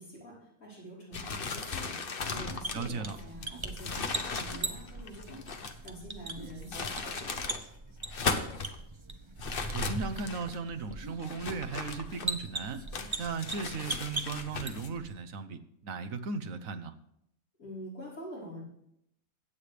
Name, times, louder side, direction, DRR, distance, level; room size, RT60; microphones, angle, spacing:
voice 1, 0.0-2.0 2.2-7.3 8.2-8.5 17.6-18.6, equal, 85° left, -7 dB, 5.5 m, -46 dB
sound 1, 1.1-5.9 6.5-7.6 8.0-8.8 9.4-10.6 11.2-12.5 12.9-14.9, left 4 dB, 45° left, 1.0 m, -37 dB
sound 2, 2.4-15.1, right 3 dB, 25° right, 0.8 m, -40 dB
voice 2, 2.7-3.2 9.7-12.8 13.2-16.9, right 4 dB, 70° right, 8 dB, 1.3 m, -36 dB
22.5 x 8.4 x 3.4 m, 0.77 s
omnidirectional pair, 1.5 m